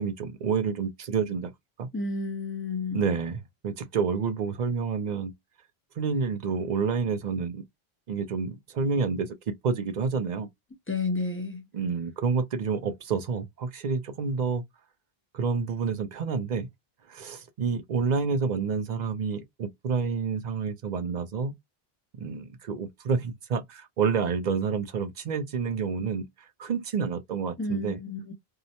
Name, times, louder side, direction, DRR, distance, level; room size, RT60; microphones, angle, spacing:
voice 1, 0.0-1.5 1.8-1.9 2.9-5.3 6.0-7.7 8.1-10.5 11.7-14.6 15.3-16.7 17.1-21.5 22.2-28.0, right 5 dB, 55° right, 0.5 m, -29 dB
voice 2, 1.9-3.0 10.9-11.6 27.6-28.3, left 3 dB, 20° left, 0.3 m, -31 dB
2.8 x 2.0 x 2.7 m
omnidirectional pair, 1.0 m